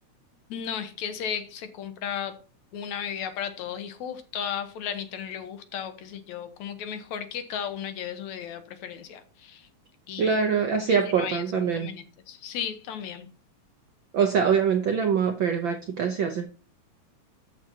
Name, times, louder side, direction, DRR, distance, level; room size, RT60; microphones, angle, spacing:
voice 1, 0.5-2.4 2.7-9.7 10.1-10.4 10.9-13.3, left 8 dB, 75° left, 9 dB, 2.4 m, -35 dB
voice 2, 10.2-11.9 14.1-16.5, right 6 dB, 70° right, 6 dB, 1.1 m, -24 dB
13.0 x 7.4 x 2.9 m, 0.36 s
omnidirectional pair, 3.4 m